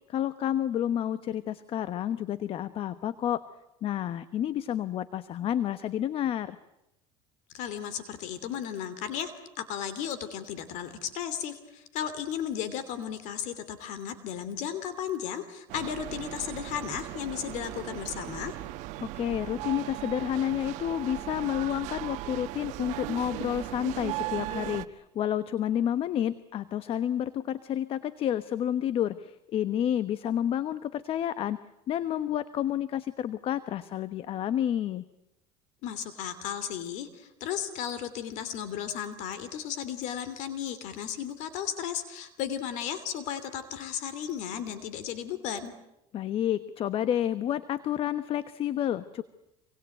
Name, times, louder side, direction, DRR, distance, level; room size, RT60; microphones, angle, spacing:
voice 1, 0.1-3.4 3.8-6.6 19.0-31.6 31.9-35.0 46.1-49.2, left 10 dB, 45° left, 14 dB, 1.1 m, -30 dB
voice 2, 7.5-18.6 35.8-45.7, left 9 dB, 65° left, 13 dB, 2.9 m, -35 dB
sound 1, 15.7-24.9, right 17 dB, 65° right, 1.2 m, -37 dB
27.0 x 24.5 x 9.1 m, 0.89 s
supercardioid pair, 120°, 13 cm